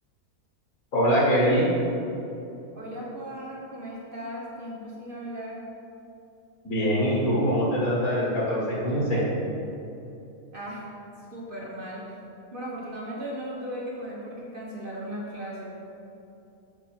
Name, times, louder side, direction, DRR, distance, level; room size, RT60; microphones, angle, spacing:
voice 1, 0.9-1.7 6.6-9.2, equal, 65° left, -5 dB, 1.7 m, -23 dB
voice 2, 2.7-5.6 10.5-10.8 11.3-12.0 12.5-15.7, equal, 40° right, -4 dB, 0.9 m, -37 dB
5.2 x 4.8 x 5.9 m, 2.8 s
omnidirectional pair, 1.6 m